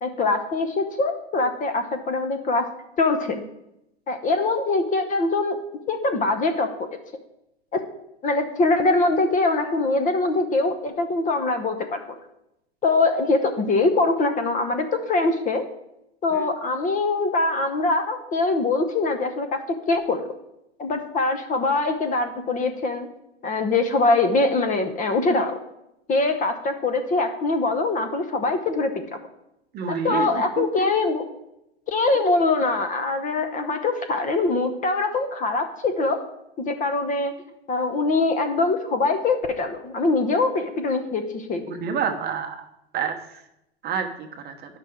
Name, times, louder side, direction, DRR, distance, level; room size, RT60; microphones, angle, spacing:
voice 1, 0.0-2.6 3.0-3.3 4.1-5.6 5.9-6.9 8.2-12.0 12.8-15.6 16.2-19.6 19.9-20.2 20.8-23.1 23.4-25.6 26.1-29.0 29.9-31.2 31.9-36.2 36.6-37.3 37.7-41.8, left 3 dB, 25° left, 7 dB, 0.8 m, -23 dB
voice 2, 29.7-30.3 30.6-30.7 41.7-42.6 42.9-43.2 43.8-44.5, right 6 dB, 30° right, 4 dB, 0.9 m, -27 dB
9.9 x 5.7 x 3.7 m, 0.85 s
hypercardioid pair, 110°, 33 cm